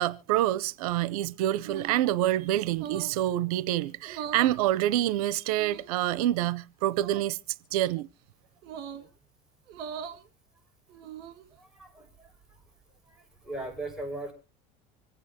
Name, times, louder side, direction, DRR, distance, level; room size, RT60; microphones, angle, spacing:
voice 1, 0.0-7.4 7.7-8.1, right 14 dB, 90° right, 0.6 m, -27 dB
sound 1, 1.6-2.1 2.7-3.2 4.0-4.6 5.5-6.1 6.9-7.3 8.6-9.1 9.7-10.2 10.9-11.5, right 8 dB, 60° right, 1.8 m, -40 dB
voice 2, 8.6-9.1 11.5-12.6 13.1-14.3, right 2 dB, 5° right, 6.0 m, -40 dB
25.5 x 8.8 x 2.8 m
supercardioid pair, 110°, 18 cm